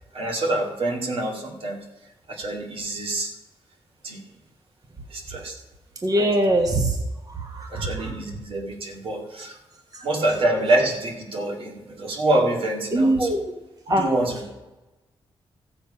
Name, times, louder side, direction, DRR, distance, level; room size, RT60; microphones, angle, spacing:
voice 1, 0.1-1.8 2.3-3.3 4.0-4.2 5.1-5.6 6.1-6.4 7.7-9.6 10.0-13.4 13.9-14.5, right 1 dB, 65° right, 2 dB, 2.2 m, -26 dB
voice 2, 6.0-7.0 7.5-7.9 12.9-13.4 13.9-14.0, right 1 dB, 35° right, 3 dB, 1.3 m, -21 dB
14.5 x 7.7 x 5.5 m, 1.1 s
wide cardioid pair, 115°, 10 cm